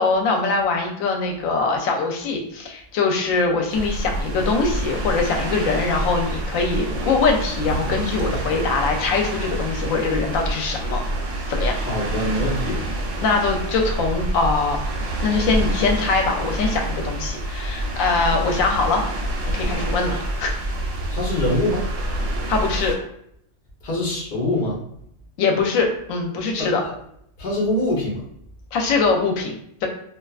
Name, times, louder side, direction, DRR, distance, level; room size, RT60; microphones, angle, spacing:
voice 1, 0.0-11.0 11.5-11.7 13.2-14.8 15.2-19.0 19.5-20.6 22.5-22.9 25.4-26.8 28.7-29.9, left 4 dB, 80° left, 2 dB, 1.0 m, -22 dB
sound 1, 3.7-23.0, right 1 dB, 70° right, 0.9 m, -27 dB
voice 2, 11.7-12.8 21.1-21.8 23.8-24.8 26.6-26.7 27.4-28.2, left 1 dB, 45° left, -3 dB, 0.8 m, -24 dB
2.4 x 2.3 x 2.3 m, 0.72 s
omnidirectional pair, 1.4 m